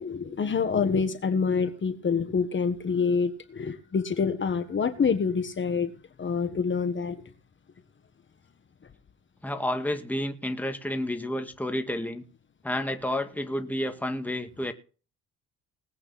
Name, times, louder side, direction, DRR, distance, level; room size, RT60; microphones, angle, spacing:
voice 1, 0.0-5.9 6.2-7.2, left 5 dB, 40° left, 1.6 m, -26 dB
voice 2, 9.4-12.2 12.6-14.7, left 1 dB, 5° left, 2.1 m, -30 dB
19.5 x 8.6 x 4.3 m
cardioid pair, 90°, 30 cm